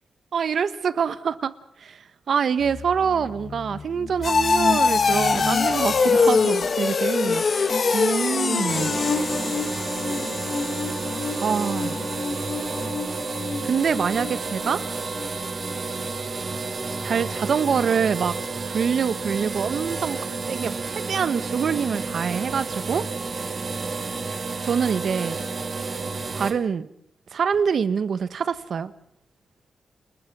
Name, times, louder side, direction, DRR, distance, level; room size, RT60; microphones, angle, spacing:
voice 1, 0.3-1.5 1.8-9.0 11.4-12.0 13.6-14.8 17.0-18.4 18.7-20.2 20.5-23.1 24.6-25.4 26.3-26.9 27.3-28.9, right 6 dB, 65° right, 15 dB, 1.3 m, -25 dB
sound 1, 2.6-15.3 15.6-16.0 16.4-16.5, left 4 dB, 50° left, 2.2 m, -24 dB
sound 2, 8.7-26.5, right 4 dB, 45° right, 2.7 m, -31 dB
29.0 x 20.5 x 6.2 m, 0.71 s
wide cardioid pair, 110°, 0 cm